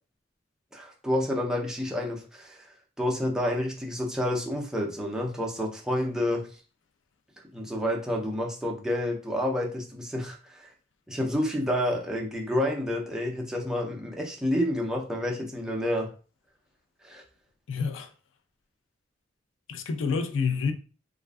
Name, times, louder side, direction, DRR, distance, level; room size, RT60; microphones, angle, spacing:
voice 1, 0.7-2.7 3.0-6.5 7.5-10.7 11.1-16.1 17.0-17.2, left 1 dB, 5° right, 0.4 m, -29 dB
voice 2, 17.7-18.1 19.7-20.7, left 5 dB, 85° left, 0.4 m, -28 dB
2.4 x 2.3 x 2.2 m
head